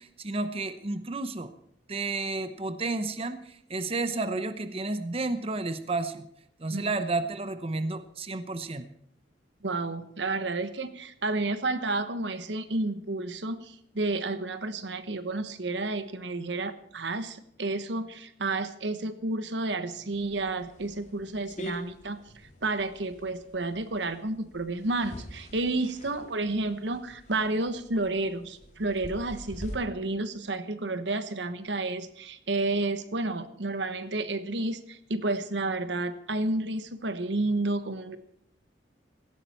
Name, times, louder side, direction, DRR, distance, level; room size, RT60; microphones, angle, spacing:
voice 1, 0.0-1.5 1.9-6.2 6.6-8.9, right 3 dB, 35° right, 10 dB, 0.9 m, -31 dB
voice 2, 9.6-22.2 22.6-38.2, right 2 dB, 80° right, 11 dB, 1.2 m, -31 dB
sound 1, 20.1-29.7, equal, 40° left, 2.8 m, -46 dB
17.0 x 14.5 x 4.4 m, 0.72 s
head